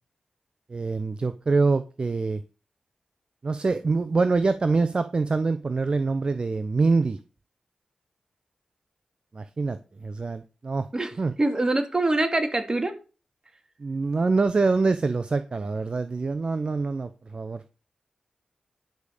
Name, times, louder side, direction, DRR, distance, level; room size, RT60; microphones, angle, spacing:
voice 1, 0.7-2.4 3.4-7.2 9.3-10.9 11.2-11.3 13.8-17.6, right 3 dB, 50° right, 11 dB, 0.7 m, -25 dB
voice 2, 11.4-12.9, right 2 dB, 35° right, 6 dB, 2.4 m, -24 dB
10.5 x 5.1 x 6.5 m, 0.34 s
cardioid pair, 50°, 2 cm